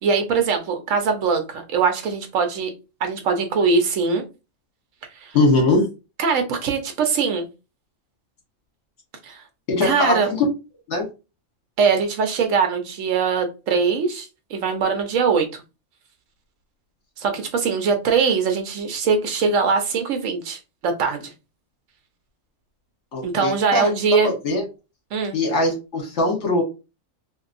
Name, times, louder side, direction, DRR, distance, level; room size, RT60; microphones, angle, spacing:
voice 1, 0.0-2.7 3.0-4.2 5.2-5.3 6.2-7.5 9.2-9.4 9.8-10.3 11.8-15.6 17.2-21.3 23.2-24.3 25.1-25.4, right 5 dB, 75° right, 5 dB, 1.1 m, -22 dB
voice 2, 5.3-5.8 9.7-10.4 10.9-11.1 23.1-23.9 24.2-24.6 25.3-26.6, left 2 dB, 60° left, 0 dB, 1.4 m, -21 dB
2.9 x 2.8 x 2.5 m, 0.28 s
omnidirectional pair, 1.4 m